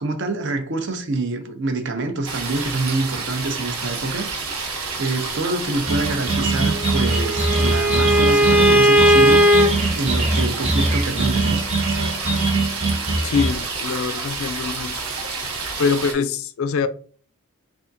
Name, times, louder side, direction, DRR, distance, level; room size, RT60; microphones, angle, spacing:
voice 1, 0.0-9.4 10.0-12.5, right 2 dB, 55° right, 0.6 m, -26 dB
sound 1, 2.2-16.1, right 4 dB, 75° right, 0.9 m, -29 dB
sound 2, 5.9-13.5, right 2 dB, 30° right, 0.9 m, -22 dB
Bowed string instrument, 6.6-9.7, equal, 10° right, 0.5 m, -17 dB
voice 2, 13.2-15.0 15.8-16.9, left 5 dB, 65° left, 0.4 m, -23 dB
3.5 x 3.4 x 2.6 m
head